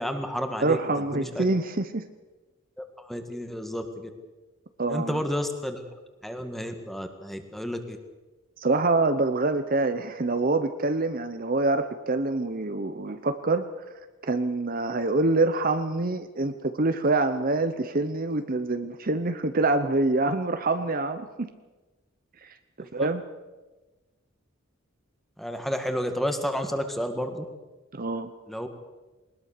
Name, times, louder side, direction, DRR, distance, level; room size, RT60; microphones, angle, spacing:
voice 1, 0.0-0.8 1.1-1.5 2.8-4.1 4.9-5.9 6.2-8.0 22.8-23.1 25.4-27.5 28.5-28.7, equal, ahead, 6 dB, 1.8 m, -31 dB
voice 2, 0.6-2.0 4.8-5.2 8.6-13.7 14.2-21.5 22.4-23.2 27.9-28.3, right 2 dB, 45° right, 9 dB, 0.9 m, -26 dB
21.5 x 20.0 x 6.7 m, 1.2 s
head